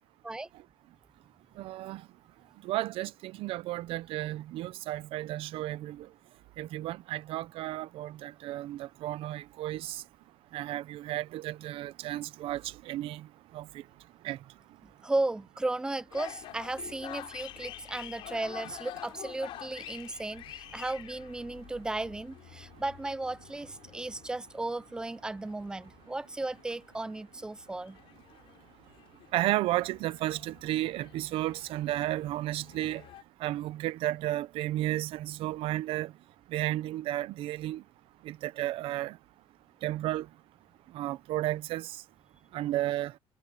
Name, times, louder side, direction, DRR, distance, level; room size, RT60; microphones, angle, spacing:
voice 1, 1.6-2.0 2.6-6.1 6.6-10.0 10.5-13.3 13.5-13.6 14.2-14.4 29.3-33.0 33.4-36.1 36.5-37.8 38.2-39.2 39.8-40.3 40.9-42.0 42.5-43.1, right 15 dB, 70° right, 0.8 m, -33 dB
voice 2, 15.0-28.0, right 2 dB, 10° right, 0.7 m, -35 dB
sound 1, 16.1-33.2, left 14 dB, 70° left, 4.1 m, -48 dB
cardioid pair, 155°, 10 cm